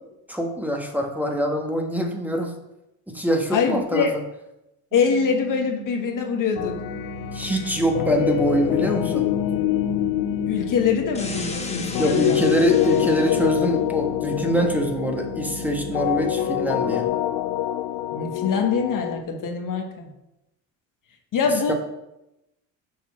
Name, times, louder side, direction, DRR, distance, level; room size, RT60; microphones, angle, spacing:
voice 1, 0.3-2.5 3.1-4.2 7.3-9.3 12.0-17.1 21.7-21.8, right 1 dB, 5° right, 2 dB, 1.3 m, -24 dB
voice 2, 3.5-4.1 4.9-6.8 10.5-12.5 18.1-20.1 21.3-21.7, left 6 dB, 55° left, 3 dB, 1.4 m, -24 dB
sound 1, 4.9-17.1, right 21 dB, 45° right, 1.3 m, -39 dB
sound 2, 6.6-19.2, left 13 dB, 75° left, 0.5 m, -25 dB
sound 3, 11.1-13.6, left 3 dB, 15° left, 1.2 m, -35 dB
6.6 x 4.2 x 5.9 m, 0.89 s
supercardioid pair, 75°, 38 cm